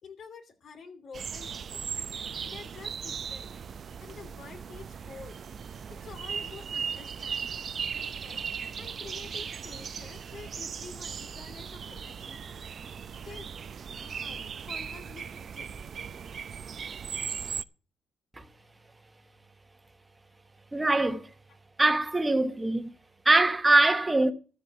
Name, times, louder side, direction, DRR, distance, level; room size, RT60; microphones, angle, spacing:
voice 1, 0.0-2.0 2.4-3.5 4.0-5.4 6.0-8.4 8.8-12.6 13.2-13.5 14.0-15.8, left 5 dB, 60° left, 2.8 m, -48 dB
sound 1, 1.1-17.6, right 7 dB, 50° right, 0.6 m, -38 dB
voice 2, 20.7-21.3 21.8-22.9 23.2-24.3, right 2 dB, 15° right, 1.3 m, -23 dB
13.0 x 5.1 x 8.6 m
cardioid pair, 90°, 0 cm